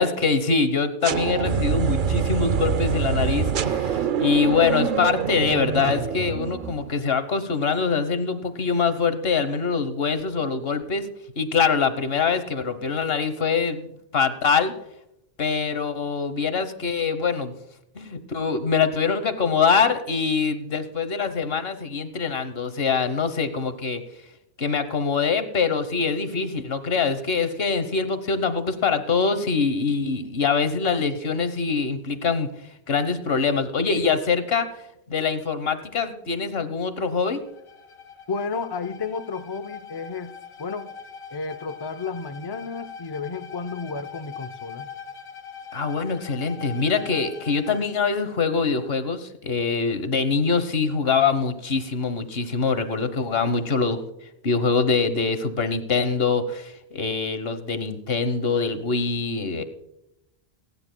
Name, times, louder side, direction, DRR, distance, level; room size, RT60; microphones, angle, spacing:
voice 1, 0.0-11.1 11.4-13.9 14.1-14.7 15.4-17.5 17.9-24.0 24.6-32.5 32.9-34.7 35.1-37.4 45.7-54.0 54.4-59.6, left 5 dB, 70° left, 11 dB, 1.3 m, -24 dB
sound 1, 1.0-7.0, right 7 dB, 55° right, 0.7 m, -25 dB
Bowed string instrument, 37.4-47.9, left 6 dB, 90° left, 1.3 m, -42 dB
voice 2, 38.3-40.3 40.6-40.9 41.3-44.9, left 4 dB, 30° left, 10 dB, 0.5 m, -32 dB
29.0 x 9.9 x 2.2 m, 0.85 s
omnidirectional pair, 1.1 m